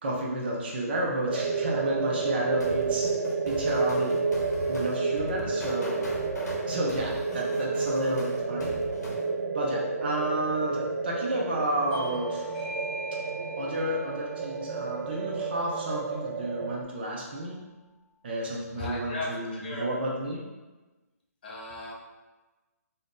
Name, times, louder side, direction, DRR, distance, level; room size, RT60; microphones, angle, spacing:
voice 1, 0.0-3.1 3.4-4.2 4.7-6.1 6.7-8.7 9.5-12.4 13.6-17.6 18.2-20.4, right 1 dB, 35° right, -2 dB, 0.6 m, -31 dB
sound 1, 1.3-16.8, right 4 dB, 85° right, 0.4 m, -30 dB
sound 2, 2.6-9.2, left 2 dB, 85° left, 0.7 m, -40 dB
Bell / Doorbell, 11.9-17.0, left 1 dB, 10° right, 0.9 m, -44 dB
voice 2, 18.8-19.9 21.4-21.9, left 2 dB, 35° left, -1 dB, 0.4 m, -36 dB
2.6 x 2.3 x 3.7 m, 1.2 s
hypercardioid pair, 165°, 9 cm